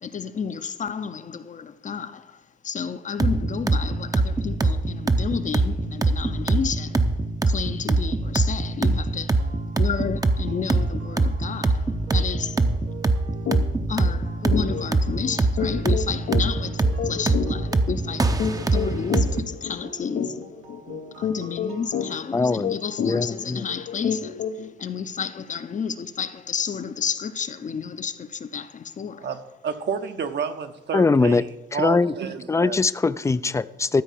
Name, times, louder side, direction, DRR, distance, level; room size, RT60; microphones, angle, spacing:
voice 1, 0.0-2.3 2.6-7.0 7.5-9.4 9.8-12.6 13.9-20.3 21.2-24.4 24.8-29.3, left 6 dB, 40° left, 0.7 m, -31 dB
sound 1, 3.2-19.4, right 2 dB, 20° right, 0.7 m, -23 dB
sound 2, 9.4-22.1, right 6 dB, 85° right, 1.6 m, -46 dB
sound 3, 13.5-13.6 14.0-14.1 14.5-24.7, left 7 dB, 80° left, 1.0 m, -30 dB
voice 2, 22.3-23.6 30.9-31.4 31.7-32.1 32.5-34.0, left 4 dB, 15° left, 0.4 m, -22 dB
voice 3, 29.2-31.5 31.7-32.8, right 6 dB, 60° right, 1.1 m, -30 dB
13.5 x 4.6 x 8.5 m
cardioid pair, 90°, 20 cm